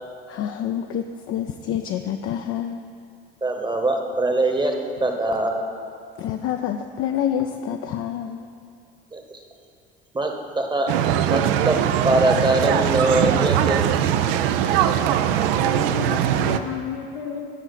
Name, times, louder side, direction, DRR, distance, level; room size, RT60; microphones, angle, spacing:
voice 1, 0.3-2.8 6.2-8.5, left 9 dB, 50° left, 6 dB, 0.4 m, -27 dB
voice 2, 3.4-4.7 5.0-5.6 9.1-9.4 10.1-10.9 11.3-11.8 12.0-13.9, right 2 dB, 15° right, 3 dB, 1.0 m, -22 dB
sound 1, 10.9-16.6, right 10 dB, 70° right, 0.5 m, -21 dB
voice 3, 15.6-17.5, left 7 dB, 80° left, 2 dB, 1.0 m, -32 dB
12.0 x 4.8 x 4.0 m, 2.3 s
hypercardioid pair, 65°, 29 cm